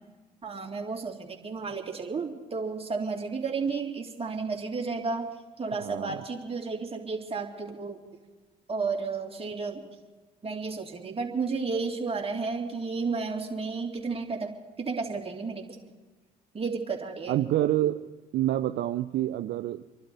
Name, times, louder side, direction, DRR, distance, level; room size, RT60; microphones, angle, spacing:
voice 1, 0.4-5.3 5.6-8.0 8.7-9.8 10.4-14.5 14.8-15.7 16.5-17.4, right 4 dB, 30° right, 0 dB, 3.0 m, -32 dB
voice 2, 5.8-6.2 17.3-19.8, right 13 dB, 60° right, 8 dB, 0.6 m, -28 dB
28.0 x 12.0 x 4.2 m, 1.2 s
hypercardioid pair, 60°, 20 cm